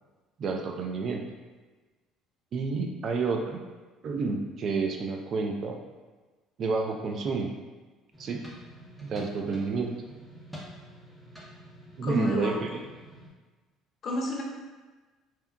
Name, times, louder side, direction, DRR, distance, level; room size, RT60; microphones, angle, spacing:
voice 1, 0.4-1.2 2.5-3.6 4.0-5.8 6.6-7.5 8.2-8.4 9.0-9.9 12.0-12.7, right 4 dB, 50° right, 3 dB, 0.3 m, -29 dB
sound 1, 8.1-13.3, equal, 5° right, 0.6 m, -48 dB
voice 2, 12.0-12.6 14.0-14.4, left 2 dB, 50° left, -1 dB, 0.5 m, -31 dB
2.7 x 2.2 x 2.2 m, 1.3 s
supercardioid pair, 90°, 0 cm